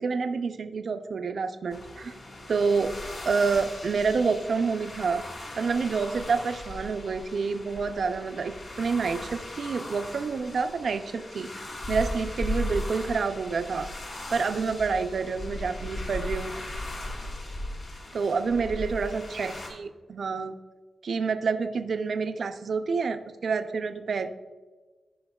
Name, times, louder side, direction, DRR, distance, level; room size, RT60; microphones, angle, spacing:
voice 1, 0.0-2.1 2.5-2.9 3.2-5.2 5.6-11.5 11.9-13.9 14.3-16.5 18.1-20.6 21.0-24.3, right 5 dB, 65° right, 8 dB, 0.5 m, -28 dB
sound 1, 1.7-19.7, left 1 dB, 60° left, 2.0 m, -37 dB
13.5 x 5.1 x 2.3 m, 1.3 s
cardioid pair, 80°, 0 cm